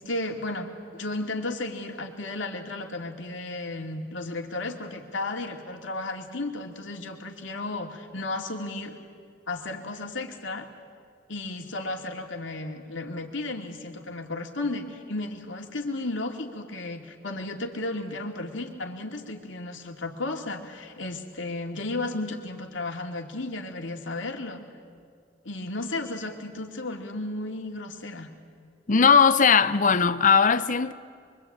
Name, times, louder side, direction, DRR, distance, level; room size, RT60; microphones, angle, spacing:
voice 1, 0.0-9.0 9.5-10.7 11.3-24.6 25.4-28.3, left 2 dB, 70° left, 2.6 m, -34 dB
voice 2, 28.9-30.9, left 6 dB, 40° left, 0.8 m, -19 dB
26.0 x 23.5 x 8.8 m
head